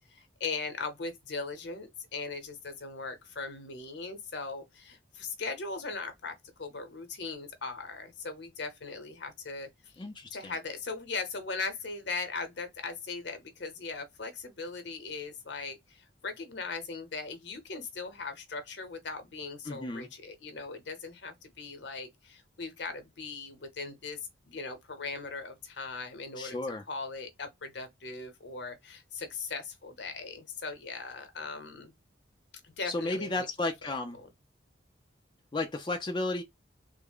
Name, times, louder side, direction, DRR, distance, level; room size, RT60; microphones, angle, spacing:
voice 1, 0.1-10.0 10.3-24.2 24.5-26.6 26.9-31.9 32.6-33.5 34.2-34.3, left 4 dB, 60° left, 0.9 m, -39 dB
voice 2, 10.0-10.5 19.7-20.1 26.4-26.8 32.8-34.2 35.5-36.4, left 2 dB, 25° left, 0.4 m, -33 dB
3.3 x 2.1 x 3.5 m
head